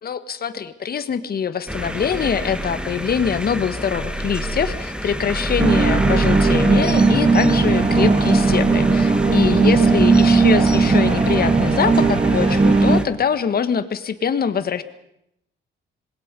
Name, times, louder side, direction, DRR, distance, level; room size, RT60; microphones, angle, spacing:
voice 1, 0.0-14.8, left 7 dB, 50° left, 11 dB, 1.7 m, -23 dB
sound 1, 1.7-13.0, equal, 5° right, 1.8 m, -28 dB
sound 2, 5.6-13.0, right 4 dB, 30° right, 2.2 m, -16 dB
26.5 x 21.0 x 5.4 m, 0.79 s
cardioid pair, 90°, 20 cm